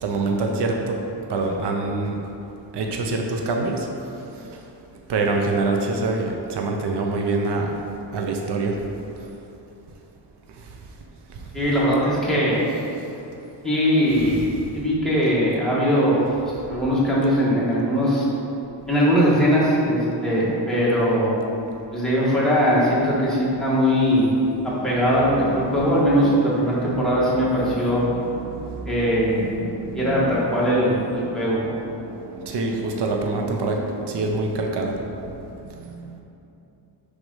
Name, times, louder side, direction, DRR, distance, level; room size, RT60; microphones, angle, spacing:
voice 1, 0.0-1.0 1.3-2.2 2.7-3.9 4.3-4.6 5.1-7.7 8.1-8.8 14.2-14.5 24.8-30.8 31.0-35.2 35.8-36.2, right 3 dB, 65° right, 2 dB, 0.7 m, -27 dB
voice 2, 11.5-12.6 13.6-14.4 14.7-16.2 16.7-18.2 18.9-21.3 21.9-24.3 24.6-28.0 28.9-29.4 29.9-31.6, equal, ahead, -8 dB, 1.5 m, -20 dB
6.1 x 3.8 x 5.4 m, 2.8 s
wide cardioid pair, 160°, 44 cm